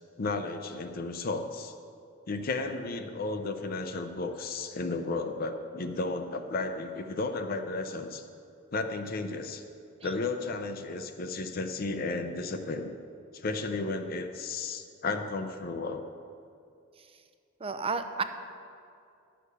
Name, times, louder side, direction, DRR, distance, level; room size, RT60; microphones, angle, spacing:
voice 1, 0.2-1.7 2.3-8.3 8.7-9.6 10.0-12.9 13.3-16.0, left 3 dB, 50° left, 7 dB, 0.5 m, -33 dB
voice 2, 17.6-18.2, right 4 dB, 30° right, 9 dB, 0.5 m, -32 dB
11.0 x 6.5 x 6.7 m, 2.5 s
head